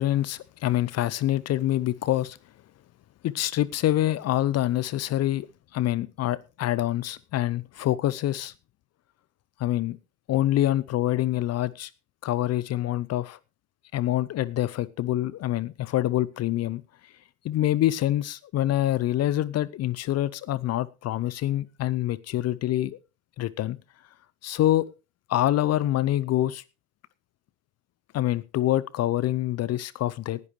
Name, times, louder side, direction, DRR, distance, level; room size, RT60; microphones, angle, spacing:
voice 1, 0.0-2.4 3.2-5.5 5.7-8.5 9.6-10.0 10.3-11.9 12.2-13.4 13.9-17.1 17.4-23.0 23.4-23.8 24.4-24.9 25.3-26.6 28.1-30.4, left 13 dB, 40° left, 0.7 m, -26 dB
19.0 x 10.5 x 3.1 m
hypercardioid pair, 70°, 41 cm